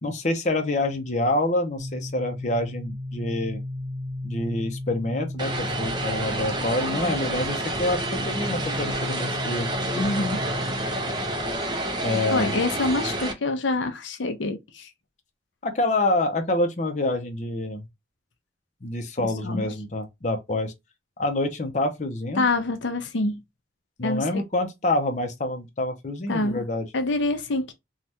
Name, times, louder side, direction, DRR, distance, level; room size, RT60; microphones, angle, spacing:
voice 1, 0.0-3.6 4.2-9.7 12.0-12.5 15.6-17.8 18.8-20.7 21.2-22.5 24.0-26.9, left 2 dB, 40° left, 0.6 m, -27 dB
sound 1, 1.8-11.6, left 1 dB, 50° right, 1.5 m, -35 dB
Vehicle, 5.4-13.3, right 1 dB, 25° right, 0.6 m, -29 dB
voice 2, 9.9-10.4 12.3-14.9 19.2-19.7 22.4-23.4 24.0-24.4 26.3-26.6 26.9-27.7, left 2 dB, 85° left, 0.6 m, -26 dB
3.3 x 2.3 x 2.7 m
head